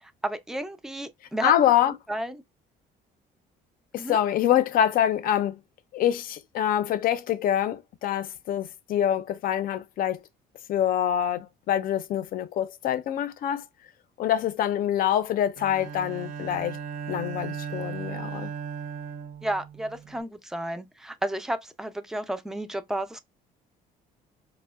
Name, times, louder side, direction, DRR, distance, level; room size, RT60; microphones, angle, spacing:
voice 1, 0.0-1.5 2.1-2.4 4.0-4.2 19.4-23.2, right 1 dB, 5° right, 0.4 m, -32 dB
voice 2, 1.4-1.9 3.9-5.6 5.9-10.2 10.7-13.6 14.2-16.8 17.1-18.5, left 10 dB, 60° left, 0.4 m, -25 dB
Bowed string instrument, 15.6-20.2, right 7 dB, 60° right, 0.6 m, -37 dB
4.4 x 2.0 x 2.3 m
cardioid pair, 110°, 17 cm